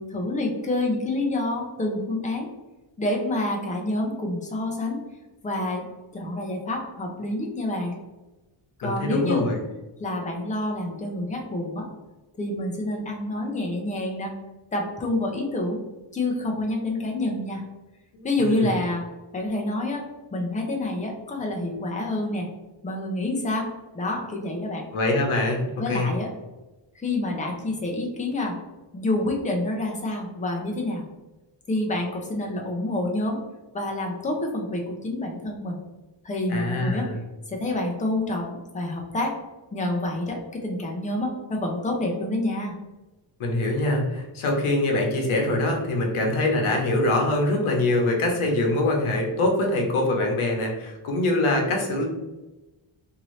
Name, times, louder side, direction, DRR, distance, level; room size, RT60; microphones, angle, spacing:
voice 1, 0.0-2.5 3.0-5.0 5.4-5.9 6.1-8.0 8.8-9.4 10.0-11.9 12.4-14.3 14.7-15.8 16.1-17.6 18.2-19.1 19.3-20.0 20.3-22.5 22.8-24.8 25.8-26.3 26.9-28.6 28.9-31.1 31.7-33.4 33.7-35.8 36.2-37.1 37.5-39.3 39.7-42.7, left 2 dB, 15° left, 0 dB, 0.5 m, -28 dB
voice 2, 8.8-9.6 18.1-18.8 24.9-26.1 36.5-37.2 43.4-52.1, left 2 dB, 80° left, 1 dB, 0.9 m, -24 dB
2.7 x 2.6 x 3.1 m, 1.1 s
wide cardioid pair, 125°, 49 cm